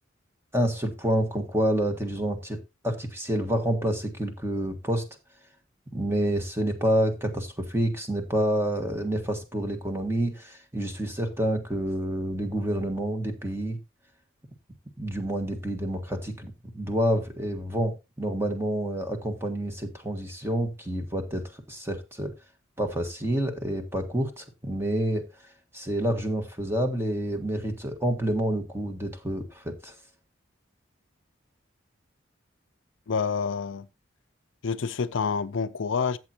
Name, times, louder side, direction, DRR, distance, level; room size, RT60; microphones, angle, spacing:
voice 1, 0.5-5.1 5.9-13.8 15.0-22.3 22.8-25.2 25.7-29.9, right 1 dB, 10° right, 1.6 m, -28 dB
voice 2, 33.1-33.9 34.6-36.2, left 5 dB, 65° left, 0.5 m, -28 dB
13.0 x 7.9 x 2.9 m
head